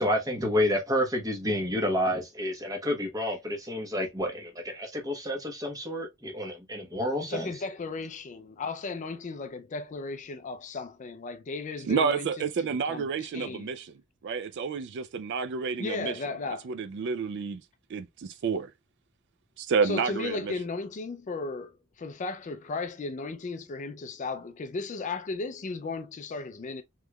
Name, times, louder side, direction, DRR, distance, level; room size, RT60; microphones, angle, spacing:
voice 1, 0.0-7.5, left 1 dB, 15° right, 1.0 m, -29 dB
voice 2, 7.2-12.3 12.7-13.1 13.3-13.7 15.8-16.7 19.8-26.8, left 3 dB, 35° left, 0.4 m, -35 dB
voice 3, 11.8-13.9 14.2-16.2 16.5-17.6 17.9-18.7 19.6-20.5, right 5 dB, 55° right, 0.3 m, -30 dB
3.5 x 3.1 x 2.2 m
head